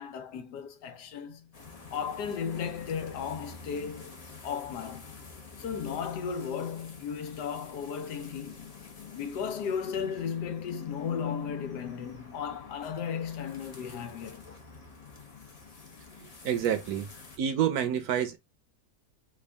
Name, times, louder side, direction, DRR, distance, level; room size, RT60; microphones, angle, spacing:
voice 1, 0.0-1.5 1.9-4.2 4.4-5.1 5.6-8.7 9.1-14.4, left 7 dB, 80° left, 1.3 m, -35 dB
sound 1, 1.5-17.4, left 5 dB, 40° left, 0.5 m, -47 dB
voice 2, 16.4-17.1 17.4-18.4, right 9 dB, 70° right, 1.1 m, -28 dB
3.5 x 2.4 x 3.3 m
omnidirectional pair, 1.8 m